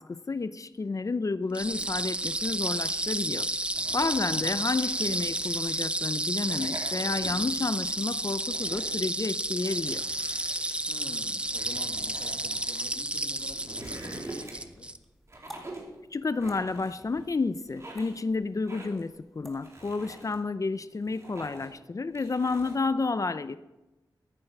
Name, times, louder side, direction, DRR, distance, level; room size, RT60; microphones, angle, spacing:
voice 1, 0.0-3.5 3.9-10.0 16.1-23.6, left 3 dB, 45° left, 13 dB, 0.6 m, -30 dB
sound 1, 1.5-15.0, right 1 dB, 15° right, 0.6 m, -31 dB
sound 2, 3.7-5.8 6.3-7.6 8.0-9.0 9.6-12.8 13.3-14.8 15.3-15.9 16.4-17.3 17.7-18.2 18.7-19.1 19.5-20.4 20.8-21.8 22.1-22.8, right 1 dB, 40° right, 3.8 m, -45 dB
voice 2, 4.2-4.5 10.9-14.9, left 3 dB, 70° left, 3 dB, 2.2 m, -47 dB
sound 3, 14.3-20.2, equal, ahead, 2.3 m, -54 dB
14.5 x 9.8 x 6.1 m, 1.0 s
wide cardioid pair, 100°, 8 cm